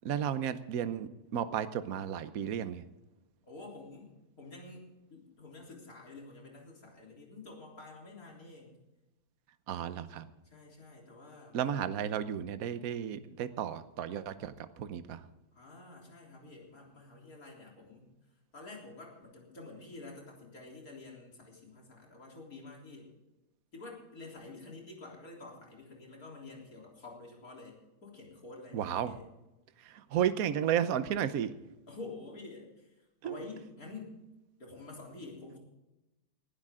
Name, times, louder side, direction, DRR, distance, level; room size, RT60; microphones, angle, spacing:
voice 1, 0.0-2.8 9.7-10.3 11.5-15.3 28.7-29.2 29.8-31.6 33.2-33.4, right 9 dB, 55° right, 12 dB, 1.0 m, -33 dB
voice 2, 3.4-4.1 4.4-8.7 10.5-11.9 15.5-18.1 18.5-23.1 23.7-29.2 31.9-34.2 34.6-35.6, left 3 dB, 40° left, -2 dB, 4.0 m, -49 dB
20.0 x 12.0 x 3.7 m, 0.99 s
omnidirectional pair, 2.3 m